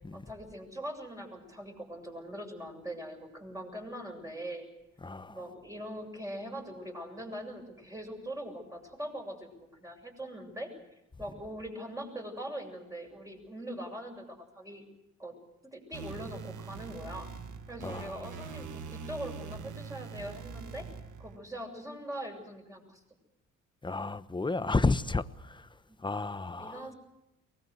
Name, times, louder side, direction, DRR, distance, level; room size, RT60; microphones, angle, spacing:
voice 1, 0.1-4.7 5.3-10.7 11.2-14.8 15.2-15.3 15.7-17.3 17.7-20.9 21.2-23.0 25.9-26.0 26.6-26.9, equal, 10° right, 7.6 m, -42 dB
voice 2, 5.0-5.4 17.8-18.2 23.8-25.7 26.0-26.9, left 3 dB, 15° left, 1.1 m, -32 dB
sound 1, 15.9-21.4, right 6 dB, 80° right, 2.0 m, -43 dB
23.0 x 20.0 x 8.1 m
cardioid pair, 90°, 30 cm